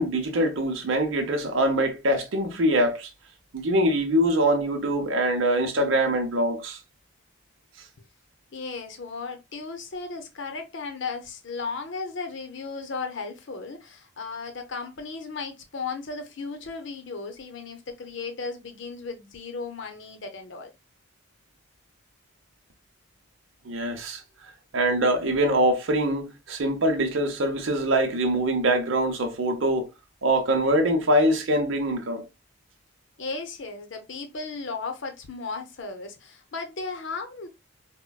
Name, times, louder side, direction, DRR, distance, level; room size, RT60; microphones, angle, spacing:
voice 1, 0.0-3.1 3.5-6.8 23.6-24.2 24.7-29.9 30.2-32.2, right 1 dB, 65° right, 0.7 m, -23 dB
voice 2, 8.5-20.7 33.2-37.5, left 4 dB, 60° left, 0.7 m, -35 dB
4.4 x 2.1 x 2.2 m
head